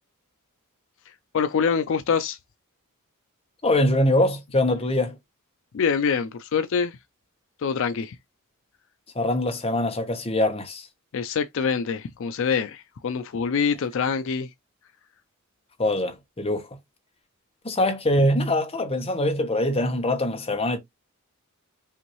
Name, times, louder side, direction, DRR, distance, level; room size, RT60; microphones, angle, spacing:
voice 1, 1.3-2.4 5.7-7.0 7.6-8.2 11.1-14.5, left 6 dB, 65° left, 0.4 m, -25 dB
voice 2, 3.6-5.2 9.1-10.9 15.8-16.7 17.6-20.8, left 1 dB, 25° left, 1.0 m, -23 dB
5.7 x 2.6 x 3.0 m
head